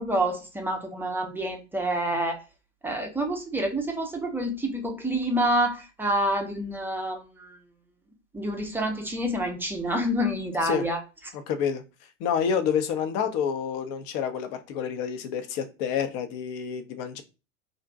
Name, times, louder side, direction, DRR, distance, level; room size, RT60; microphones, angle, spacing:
voice 1, 0.0-2.4 2.8-7.5 8.3-11.0, right 1 dB, 5° right, 0.5 m, -28 dB
voice 2, 11.3-11.8 12.2-17.2, left 7 dB, 45° left, 0.6 m, -28 dB
2.6 x 2.2 x 3.7 m
hypercardioid pair, 105°, 37 cm